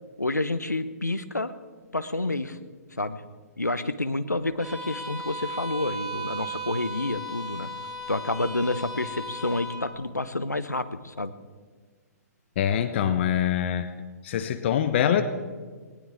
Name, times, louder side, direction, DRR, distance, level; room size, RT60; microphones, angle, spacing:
voice 1, 0.2-1.5 1.9-2.6 3.0-3.2 3.6-7.7 8.1-11.3, left 2 dB, 90° left, 12 dB, 1.0 m, -29 dB
Bowed string instrument, 4.6-9.9, right 1 dB, 5° right, 3.8 m, -36 dB
voice 2, 12.6-13.9 14.2-15.2, left 9 dB, 45° left, 10 dB, 1.0 m, -24 dB
19.5 x 19.0 x 3.7 m, 1.5 s
figure-of-eight pair, 125°, 9 cm